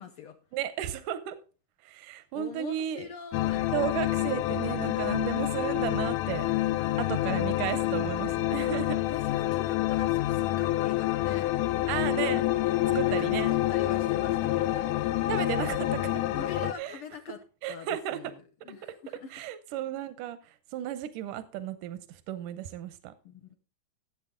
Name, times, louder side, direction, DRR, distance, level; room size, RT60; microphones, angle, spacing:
voice 1, 0.0-0.4 2.3-3.7 7.0-7.4 9.1-11.5 13.0-15.1 16.3-17.4 17.7-18.4 18.6-19.3 23.2-23.6, left 7 dB, 70° left, 1.3 m, -43 dB
voice 2, 0.5-1.4 1.8-3.1 3.7-6.5 7.0-9.0 11.9-13.7 15.3-16.1 16.8-17.0 17.6-18.2 19.3-23.1, right 11 dB, 85° right, 2.3 m, -34 dB
sound 1, 3.3-16.7, left 15 dB, 90° left, 2.2 m, -28 dB
14.0 x 7.9 x 3.8 m
omnidirectional pair, 3.6 m